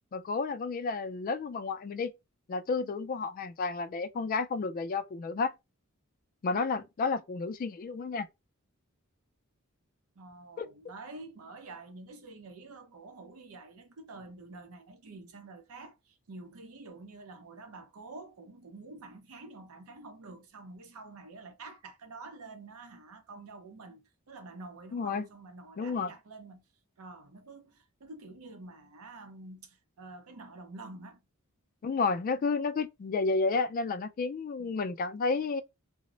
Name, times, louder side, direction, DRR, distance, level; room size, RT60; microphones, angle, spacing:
voice 1, 0.1-2.1 2.5-5.5 6.4-8.3 10.6-10.7 24.9-25.3 25.8-26.1 31.8-35.6, left 4 dB, 40° left, 0.3 m, -31 dB
voice 2, 10.2-26.6 27.0-31.2 34.6-34.7, right 3 dB, 85° right, 0.6 m, -48 dB
2.0 x 2.0 x 3.7 m
head